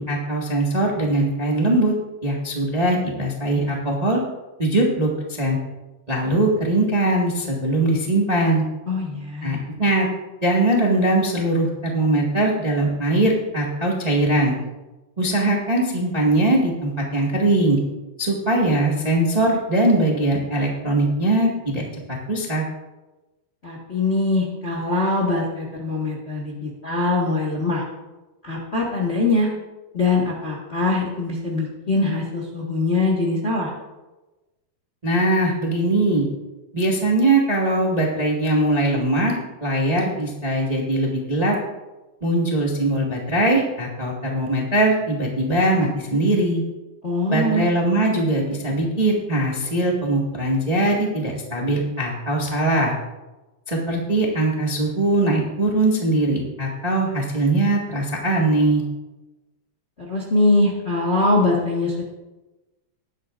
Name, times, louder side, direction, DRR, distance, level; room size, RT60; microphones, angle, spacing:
voice 1, 0.0-1.9 2.2-4.2 4.6-5.6 6.1-8.6 9.4-10.1 10.4-14.6 15.2-17.8 18.2-21.9 22.3-22.6 35.0-36.3 36.7-41.5 42.2-46.6 47.3-52.9 53.7-58.8, right 1 dB, 20° right, -2 dB, 1.2 m, -21 dB
voice 2, 8.9-9.6 23.6-27.8 28.4-29.5 29.9-33.7 47.0-47.7 60.1-62.0, left 2 dB, 30° left, -3 dB, 1.3 m, -22 dB
19.5 x 10.5 x 2.6 m, 1.1 s
omnidirectional pair, 3.6 m